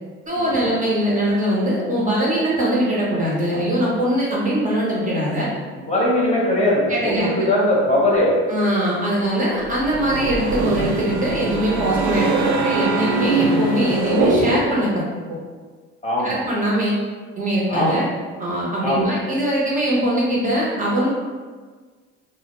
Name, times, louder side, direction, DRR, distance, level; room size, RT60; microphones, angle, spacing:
voice 1, 0.3-5.5 6.9-7.5 8.5-12.3 12.6-15.0 15.3-15.4 16.2-17.1 17.4-18.1 18.4-21.1, equal, 25° right, -5 dB, 0.6 m, -21 dB
voice 2, 5.7-8.3 16.0-16.4 17.7-18.0 18.8-19.1, left 1 dB, 20° left, -5 dB, 0.7 m, -20 dB
sound 1, 9.6-14.9, right 3 dB, 80° right, 0.5 m, -22 dB
2.1 x 2.1 x 2.9 m, 1.5 s
supercardioid pair, 80°, 31 cm